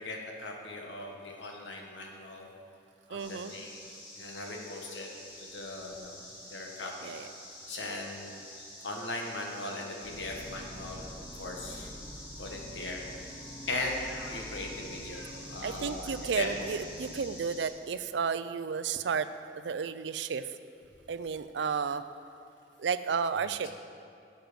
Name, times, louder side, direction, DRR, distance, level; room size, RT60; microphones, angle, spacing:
voice 1, 0.0-2.5 3.1-3.8 4.2-5.1 5.4-6.2 6.5-7.2 7.7-11.9 12.4-13.0 13.7-16.6, left 2 dB, 90° left, 1 dB, 1.5 m, -39 dB
voice 2, 3.1-3.5 7.0-7.3 15.6-19.3 19.6-20.5 21.1-22.0 22.8-23.7, right 6 dB, 80° right, 12 dB, 0.4 m, -32 dB
sound 1, 3.2-17.7, left 1 dB, 30° left, 2.5 m, -48 dB
sound 2, 10.0-17.1, equal, 10° left, 1.9 m, -47 dB
11.5 x 7.6 x 5.2 m, 2.5 s
head